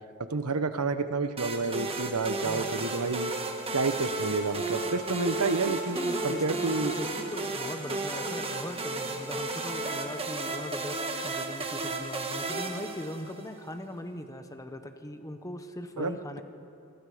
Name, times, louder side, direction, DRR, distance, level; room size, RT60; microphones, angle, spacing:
voice 1, 0.3-3.3 3.7-6.9 16.0-16.4, right 3 dB, 85° right, 10 dB, 1.1 m, -30 dB
sound 1, 1.4-13.6, right 2 dB, 25° right, 1.6 m, -33 dB
voice 2, 2.4-2.7 5.9-16.4, left 1 dB, 15° left, 7 dB, 1.2 m, -40 dB
27.5 x 22.5 x 5.1 m, 2.5 s
head